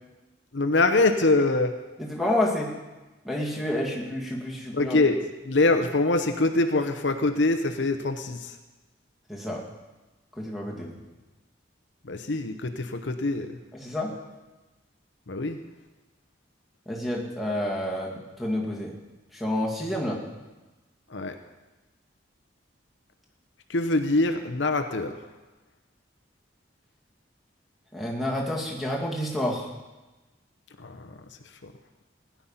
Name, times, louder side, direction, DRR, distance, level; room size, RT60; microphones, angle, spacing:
voice 1, 0.5-1.8 4.7-5.2 5.4-8.6 12.0-13.6 15.3-15.6 21.1-21.4 23.7-25.2 30.8-31.2 31.6-31.7, left 2 dB, 65° left, 7 dB, 0.9 m, -24 dB
voice 2, 2.0-2.8 3.2-5.0 9.3-9.6 10.4-10.9 13.7-14.1 16.9-18.9 19.3-20.2 27.9-29.7, left 1 dB, ahead, -2 dB, 2.2 m, -29 dB
16.5 x 10.5 x 5.6 m, 1.1 s
head